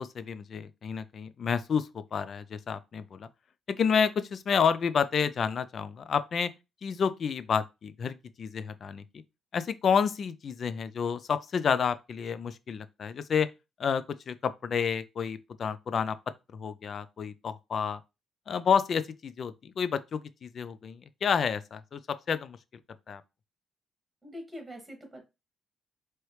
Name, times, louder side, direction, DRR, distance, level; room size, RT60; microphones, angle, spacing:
voice 1, 0.0-3.3 3.7-6.5 6.8-9.2 9.5-13.5 13.8-16.2 16.5-18.0 18.5-22.6 23.1-23.2, left 6 dB, 50° left, 0.4 m, -30 dB
voice 2, 24.2-25.2, equal, 15° right, 2.1 m, -43 dB
4.7 x 3.0 x 3.2 m
cardioid pair, 90°, 0 cm